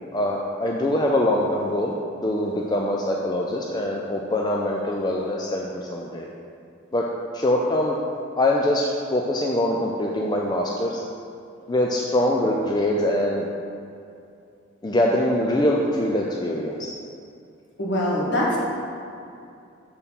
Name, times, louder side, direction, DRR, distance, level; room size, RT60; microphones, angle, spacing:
voice 1, 0.1-1.9 2.2-6.3 6.9-7.1 7.3-8.0 8.4-11.0 11.7-13.5 14.8-16.9, left 1 dB, 20° left, -1 dB, 0.4 m, -23 dB
voice 2, 17.8-18.6, left 1 dB, 60° left, -5 dB, 1.6 m, -23 dB
6.8 x 4.5 x 5.4 m, 2.5 s
head